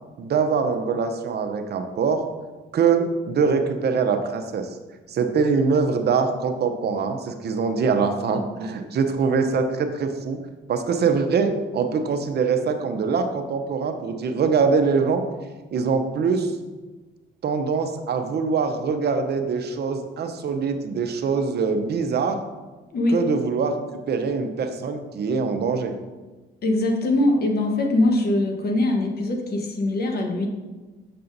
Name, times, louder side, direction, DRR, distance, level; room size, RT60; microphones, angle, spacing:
voice 1, 0.2-2.2 2.7-4.8 5.1-10.4 10.7-15.2 15.7-16.5 17.4-22.4 23.1-23.7 24.1-25.9, right 5 dB, 55° right, 7 dB, 0.7 m, -23 dB
voice 2, 26.6-30.5, left 2 dB, 55° left, 2 dB, 1.1 m, -22 dB
6.8 x 5.5 x 2.6 m, 1.2 s
cardioid pair, 90°, 20 cm